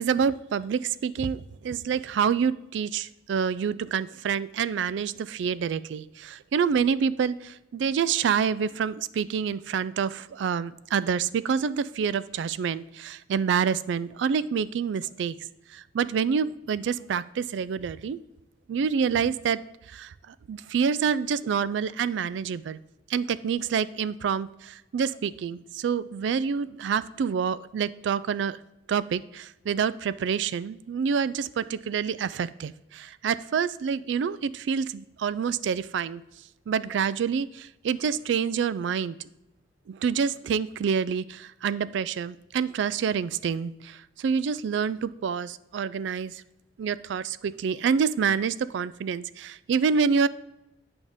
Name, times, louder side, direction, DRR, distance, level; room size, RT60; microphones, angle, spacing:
voice 1, 0.0-15.4 15.7-18.2 18.7-19.6 19.9-22.8 23.1-28.6 28.9-36.2 36.7-39.2 39.9-46.4 46.8-50.3, right 6 dB, 70° right, 17 dB, 0.3 m, -27 dB
8.5 x 5.2 x 3.5 m, 0.89 s
head